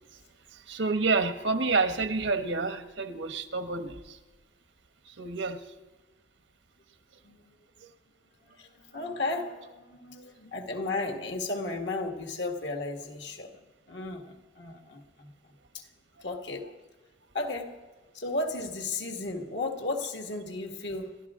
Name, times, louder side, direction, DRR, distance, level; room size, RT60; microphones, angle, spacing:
voice 1, 0.7-4.2 5.1-5.6, right 3 dB, 80° right, 8 dB, 1.1 m, -28 dB
voice 2, 7.2-7.5 8.4-15.9 16.2-16.7 17.3-17.8 18.1-21.2, left 2 dB, 70° left, 3 dB, 1.8 m, -35 dB
29.0 x 12.0 x 3.7 m, 1.3 s
head